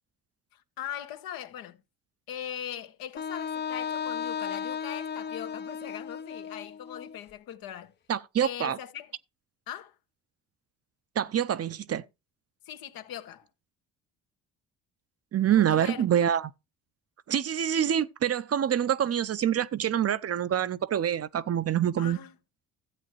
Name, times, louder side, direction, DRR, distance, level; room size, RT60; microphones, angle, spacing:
voice 1, 0.5-1.8 2.3-7.9 8.4-9.1 9.7-9.9 12.6-13.5 15.5-16.0 22.0-22.3, left 10 dB, 70° left, 1.3 m, -40 dB
Wind instrument woodwind instrument, 3.2-7.2, left 7 dB, 30° left, 0.7 m, -35 dB
voice 2, 8.1-8.8 11.2-12.0 15.3-16.5 17.3-22.2, right 9 dB, 40° right, 0.7 m, -26 dB
13.5 x 8.2 x 3.2 m
hypercardioid pair, 60°, 36 cm